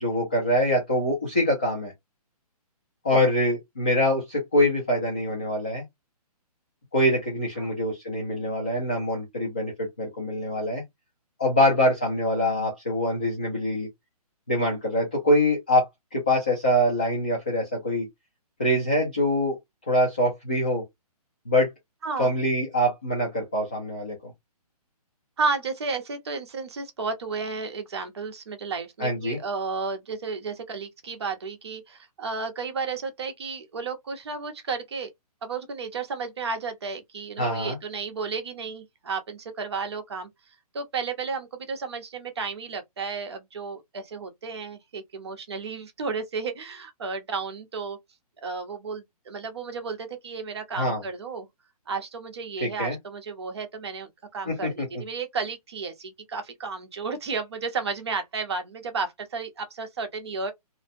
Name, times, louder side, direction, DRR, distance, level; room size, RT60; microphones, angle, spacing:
voice 1, 0.0-1.9 3.0-5.8 6.9-10.8 11.4-13.9 14.5-18.1 18.6-19.6 19.9-20.8 21.5-21.7 22.2-24.3 29.0-29.4 37.4-37.8 50.7-51.0 52.6-53.0 54.5-54.7, left 1 dB, 15° left, 0.3 m, -24 dB
voice 2, 25.4-35.1 35.4-40.3 40.7-48.0 48.4-51.5 51.9-60.5, right 4 dB, 40° right, 0.7 m, -33 dB
2.5 x 2.0 x 2.5 m
hypercardioid pair, 175°, 20 cm